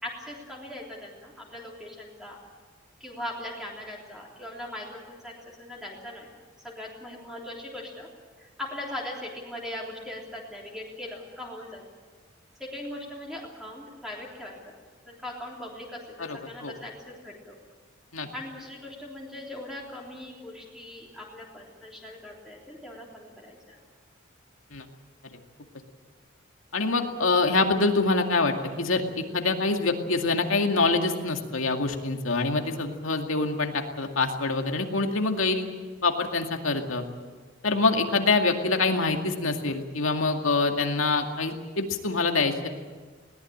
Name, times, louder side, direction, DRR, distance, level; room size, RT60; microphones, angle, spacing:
voice 1, 0.0-2.4 3.0-6.3 6.6-8.1 8.4-11.8 12.6-14.8 15.1-17.6 18.3-23.8, left 1 dB, ahead, -3 dB, 3.5 m, -40 dB
voice 2, 16.2-16.7 18.1-18.3 24.7-24.8 26.7-35.7 36.0-37.0 37.6-42.7, left 3 dB, 90° left, 4 dB, 2.3 m, -25 dB
21.0 x 18.5 x 8.7 m, 1.4 s
head